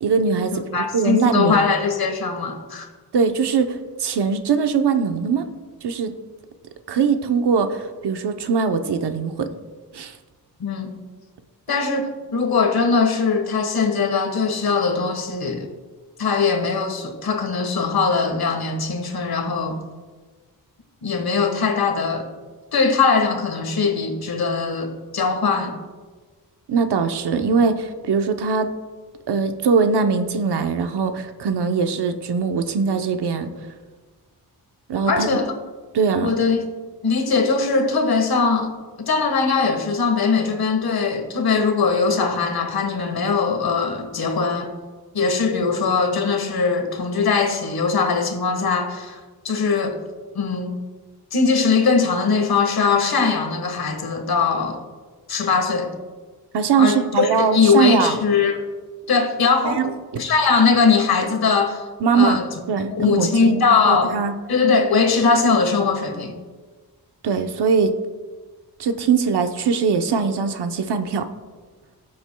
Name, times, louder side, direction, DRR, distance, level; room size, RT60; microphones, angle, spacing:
voice 1, 0.0-1.7 3.1-5.5 5.8-6.1 6.9-9.5 9.9-10.2 26.7-28.7 29.3-33.5 34.9-35.4 35.9-36.3 56.5-58.2 59.6-59.9 62.0-62.4 62.7-64.3 67.2-67.9 68.8-71.3, right 5 dB, 80° right, 7 dB, 0.9 m, -21 dB
voice 2, 0.5-2.9 10.6-10.9 11.7-15.7 16.2-19.8 21.0-22.3 22.7-25.7 35.1-35.5 36.2-36.6 37.0-38.7 39.0-44.7 45.1-49.2 49.4-50.0 50.3-50.7 51.3-54.8 55.3-55.9 56.8-58.6 59.1-61.8 62.1-62.5 62.9-64.1 64.5-66.4, left 5 dB, 65° left, 5 dB, 1.5 m, -20 dB
18.0 x 7.9 x 2.3 m, 1.4 s
wide cardioid pair, 125°, 39 cm